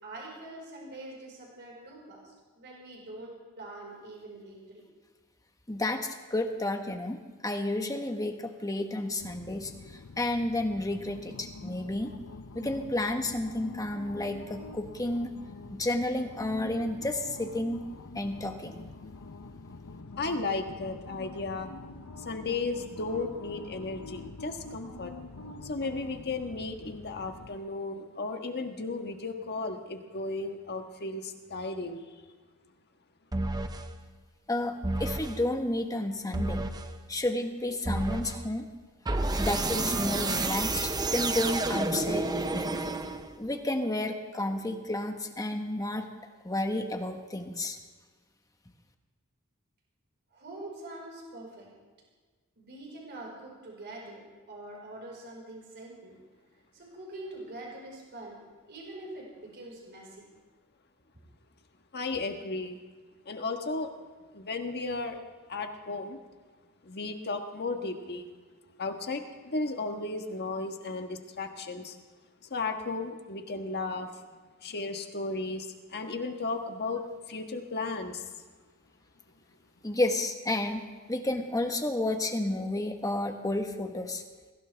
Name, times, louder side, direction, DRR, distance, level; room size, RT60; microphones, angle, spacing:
voice 1, 0.0-4.8 50.3-51.7 52.6-56.1 56.7-58.4 58.7-60.2, right 2 dB, 55° right, -2 dB, 5.0 m, -44 dB
voice 2, 5.7-12.1 12.5-15.4 15.7-17.8 18.1-18.8 34.5-36.7 37.1-38.7 39.4-42.8 43.4-46.1 46.4-47.8 79.8-80.8 81.1-84.2, left 1 dB, 15° left, 5 dB, 1.3 m, -31 dB
sound 1, 9.2-27.6, left 3 dB, 75° left, 0.8 m, -45 dB
voice 3, 20.2-21.7 22.2-25.1 25.6-32.1 61.9-62.8 63.2-63.9 64.3-65.2 65.5-66.2 66.8-68.3 68.8-72.0 72.4-74.1 74.6-77.0 77.3-78.3, left 3 dB, 50° left, 5 dB, 1.4 m, -34 dB
sound 2, 33.3-33.9 34.8-35.4 36.3-36.9 37.9-38.4 39.1-43.5, right 2 dB, 20° right, 0.7 m, -30 dB
22.0 x 16.0 x 3.5 m, 1.4 s
head